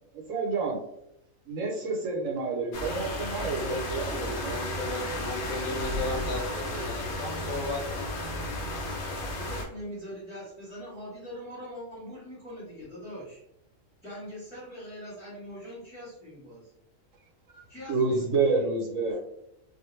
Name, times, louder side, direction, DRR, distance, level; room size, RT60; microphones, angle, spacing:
voice 1, 0.3-0.8 1.4-4.6 17.5-17.6 17.9-19.2, right 4 dB, 75° right, -1 dB, 1.0 m, -29 dB
sound 1, 2.7-9.7, left 1 dB, 65° left, 0.8 m, -33 dB
voice 2, 4.0-8.1, left 2 dB, 80° left, 0 dB, 0.4 m, -35 dB
voice 3, 9.3-13.4 14.0-16.7 17.7-18.4, equal, 5° right, -10 dB, 0.9 m, -42 dB
2.3 x 2.1 x 3.0 m, 0.80 s
omnidirectional pair, 1.4 m